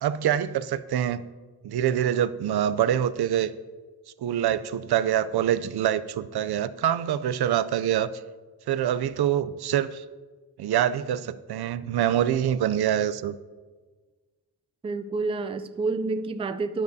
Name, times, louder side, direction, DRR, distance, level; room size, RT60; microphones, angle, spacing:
voice 1, 0.0-1.2 1.6-3.5 4.2-8.1 8.7-10.0 10.6-13.3, right 10 dB, 75° right, 14 dB, 0.5 m, -25 dB
voice 2, 14.8-16.8, right 3 dB, 15° right, 11 dB, 0.3 m, -28 dB
12.0 x 10.5 x 2.7 m, 1.4 s
wide cardioid pair, 140°, 39 cm